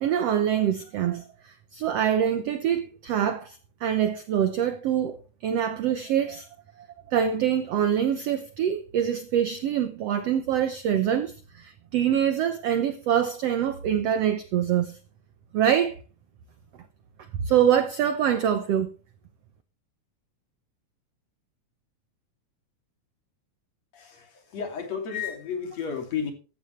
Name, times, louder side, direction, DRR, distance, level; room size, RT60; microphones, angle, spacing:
voice 1, 0.0-5.2 5.4-6.5 7.1-15.0 15.5-16.0 17.4-18.9, right 9 dB, 75° right, 1.5 m, -25 dB
voice 2, 23.9-26.3, left 7 dB, 50° left, 3.7 m, -32 dB
16.0 x 12.5 x 3.2 m
omnidirectional pair, 4.0 m